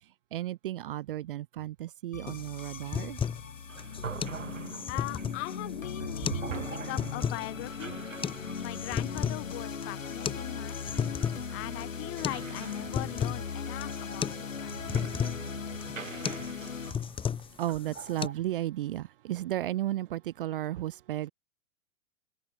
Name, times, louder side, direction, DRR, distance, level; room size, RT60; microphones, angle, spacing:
voice 1, 0.0-3.2 6.5-6.7 14.3-15.2 15.9-21.3, right 14 dB, 45° right, 0.7 m, -35 dB
sound 1, 2.1-16.9, left 5 dB, 75° left, 2.2 m, -39 dB
sound 2, 2.3-18.3, left 7 dB, 15° left, 1.7 m, -35 dB
sound 3, 3.7-18.3, right 6 dB, 70° right, 2.5 m, -46 dB
voice 2, 4.9-8.0 8.6-10.8 11.5-14.8, left 25 dB, 30° left, 3.5 m, -40 dB
figure-of-eight pair, 105°, 40 cm